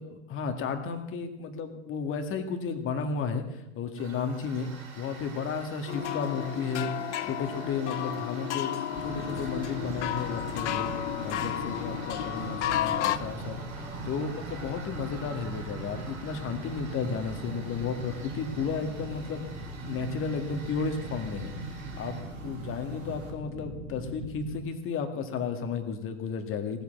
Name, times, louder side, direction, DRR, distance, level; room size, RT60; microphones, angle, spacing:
voice 1, 0.0-4.7 5.0-6.9 7.2-10.9 11.2-13.6 14.0-19.4 19.8-21.5 22.0-26.8, left 5 dB, 30° left, 6 dB, 2.0 m, -33 dB
Tools, 4.0-23.3, right 4 dB, 80° right, 4.8 m, -46 dB
sound 1, 5.9-13.2, left 12 dB, 55° left, 0.8 m, -32 dB
sound 2, 8.9-24.6, right 2 dB, 15° left, 2.9 m, -40 dB
17.5 x 8.2 x 7.5 m, 0.87 s
figure-of-eight pair, 95°, 40 cm